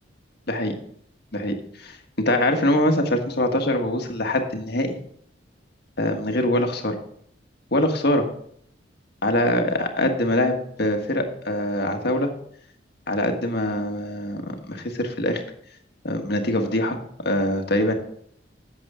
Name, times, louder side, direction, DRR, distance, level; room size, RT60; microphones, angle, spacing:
voice 1, 1.3-2.0 2.2-5.0 6.0-7.0 7.7-8.2 9.2-12.3 13.1-15.4 16.0-17.0 17.2-17.9, left 1 dB, 60° left, 4 dB, 1.6 m, -23 dB
11.0 x 7.9 x 3.7 m, 0.65 s
head